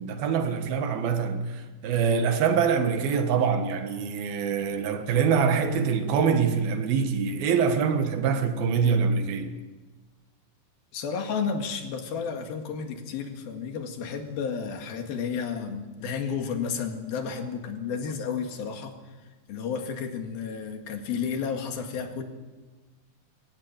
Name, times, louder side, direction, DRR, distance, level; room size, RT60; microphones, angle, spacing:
voice 1, 0.0-9.5, right 6 dB, 90° right, 3.5 m, -24 dB
voice 2, 10.9-19.0 19.5-22.2, left 6 dB, 85° left, 3.9 m, -32 dB
22.5 x 16.0 x 9.0 m
omnidirectional pair, 4.2 m